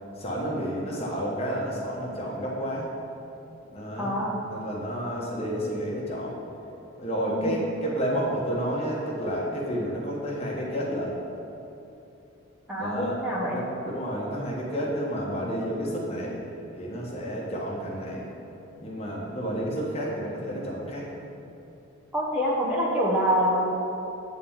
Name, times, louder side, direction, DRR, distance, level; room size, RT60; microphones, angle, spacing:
voice 1, 0.2-3.0 3.7-4.2 4.5-6.4 7.0-11.2 12.8-13.2 13.5-16.4 16.7-18.2 18.8-21.1, equal, 30° left, -3 dB, 1.2 m, -30 dB
voice 2, 4.0-4.4 7.3-7.5 12.7-13.6 22.1-23.6, equal, 5° right, -6 dB, 1.1 m, -26 dB
8.8 x 4.2 x 7.2 m, 2.8 s
head